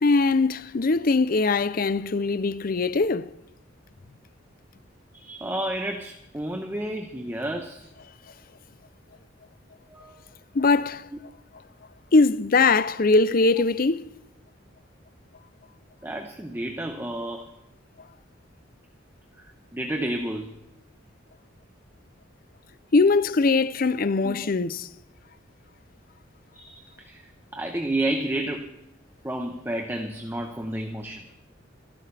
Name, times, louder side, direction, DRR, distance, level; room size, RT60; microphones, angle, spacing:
voice 1, 0.0-3.3 10.5-11.1 12.1-14.1 22.9-24.9, left 3 dB, 45° left, 0.5 m, -21 dB
voice 2, 5.1-7.9 9.9-10.2 16.0-17.5 19.4-19.5 19.7-20.5 24.2-24.3 26.5-27.2 27.5-28.7 29.2-31.3, right 1 dB, 10° right, 1.0 m, -31 dB
27.0 x 11.5 x 3.4 m
head